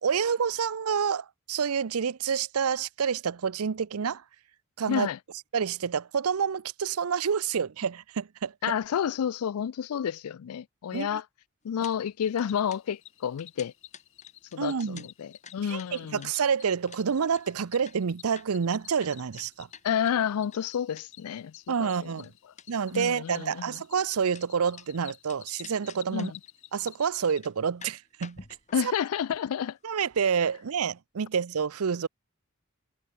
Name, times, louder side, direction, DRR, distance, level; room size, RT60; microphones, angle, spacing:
voice 1, 0.0-4.2 4.8-5.1 5.5-8.5 10.9-11.2 14.6-15.0 15.7-19.7 21.7-22.3 22.7-26.3 26.7-28.4 28.8-28.9 29.8-32.1, right 6 dB, 85° right, 0.6 m, -28 dB
voice 2, 4.9-5.2 8.6-11.2 11.6-13.7 14.5-16.3 19.8-22.3 22.9-23.8 26.1-26.4 28.7-29.8, left 8 dB, 85° left, 0.4 m, -30 dB
sound 1, 11.8-12.0 12.2-21.3 21.6-24.9 25.3-26.5 26.8-26.9 27.2-30.6 30.9-31.0, left 6 dB, 30° left, 3.2 m, -51 dB
Cricket, 12.2-27.4, left 14 dB, 60° left, 4.7 m, -52 dB
head